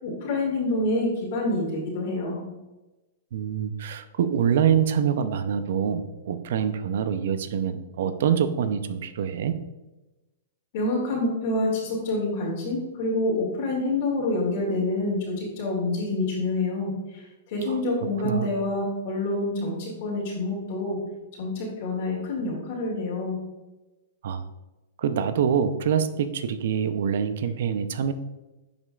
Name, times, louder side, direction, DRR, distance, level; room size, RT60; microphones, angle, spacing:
voice 1, 0.0-2.4 10.7-16.9 17.5-21.0 21.4-23.4, left 2 dB, 55° left, -4 dB, 2.4 m, -27 dB
voice 2, 3.3-9.6 17.7-18.5 24.2-24.4 25.0-28.1, right 8 dB, 65° right, 11 dB, 0.6 m, -25 dB
10.5 x 5.1 x 2.4 m, 1.1 s
hypercardioid pair, 130°, 0 cm